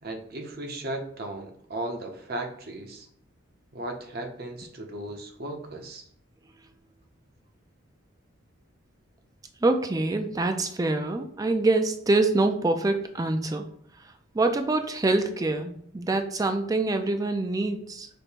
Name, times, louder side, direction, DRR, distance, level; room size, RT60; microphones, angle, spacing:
voice 1, 0.0-3.1 3.7-6.0, right 1 dB, 45° right, 4 dB, 0.7 m, -36 dB
voice 2, 9.6-13.7 14.3-18.1, right 2 dB, 15° right, 6 dB, 0.3 m, -25 dB
5.1 x 2.1 x 4.4 m, 0.66 s
head